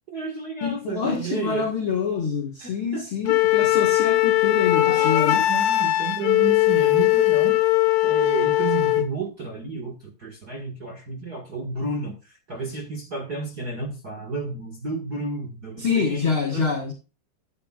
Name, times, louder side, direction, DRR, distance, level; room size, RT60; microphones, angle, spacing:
voice 1, 0.1-1.7 2.6-3.1 4.8-7.6 8.0-16.7, right 4 dB, 45° right, 1.2 m, -32 dB
voice 2, 0.6-5.5 15.8-16.9, left 6 dB, 50° left, 1.7 m, -26 dB
Wind instrument woodwind instrument, 3.3-9.1, left 16 dB, 70° left, 2.4 m, -20 dB
11.5 x 10.5 x 2.4 m
omnidirectional pair, 4.4 m